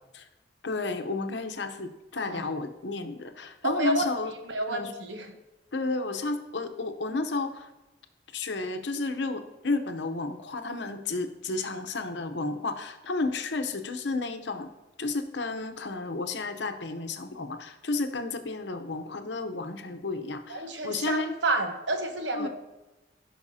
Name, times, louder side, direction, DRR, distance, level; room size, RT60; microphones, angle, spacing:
voice 1, 0.6-4.3 4.7-4.9 5.7-7.7 8.3-14.7 15.0-21.3 22.3-22.5, left 3 dB, 75° left, 7 dB, 0.8 m, -32 dB
voice 2, 2.2-2.5 3.6-4.0 4.4-5.3 20.5-22.5, right 2 dB, 75° right, 5 dB, 1.1 m, -30 dB
16.0 x 5.8 x 2.8 m, 1.0 s
head